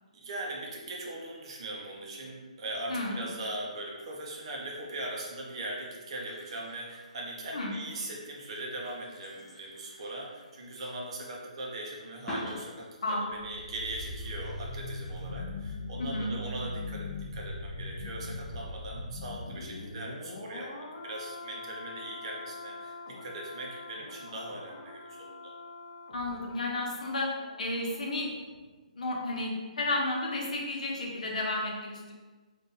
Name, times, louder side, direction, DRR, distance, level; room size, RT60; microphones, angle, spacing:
voice 1, 0.1-25.5, right 1 dB, 45° right, -2 dB, 0.9 m, -40 dB
sound 1, 4.2-5.4 5.8-11.1 11.3-11.4 12.2-13.2 13.6-15.3, equal, 5° left, 0.9 m, -47 dB
sound 2, 13.2-28.2 28.5-28.6, left 2 dB, 50° left, 0.7 m, -41 dB
voice 2, 16.0-16.3 26.1-27.3 27.6-28.3 29.0-32.1, left 2 dB, 70° left, -2 dB, 1.0 m, -32 dB
3.7 x 2.6 x 3.8 m, 1.3 s
hypercardioid pair, 160°, 4 cm